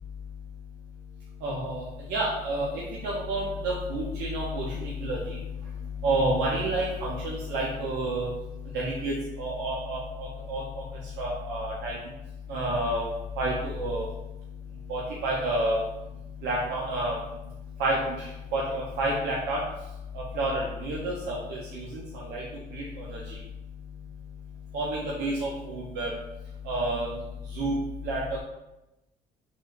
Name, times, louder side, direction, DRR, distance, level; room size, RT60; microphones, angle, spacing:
voice 1, 1.4-5.4 6.0-8.3 8.7-10.6 11.2-12.0 12.5-13.1 13.4-14.1 14.9-15.8 16.4-17.2 17.8-18.3 18.5-19.6 20.1-22.4 22.7-23.4 24.7-26.1 26.7-27.1 27.5-27.7 28.0-28.4, right 1 dB, 85° right, -4 dB, 0.5 m, -29 dB
3.1 x 2.4 x 2.2 m, 0.95 s
cardioid pair, 110°, 17 cm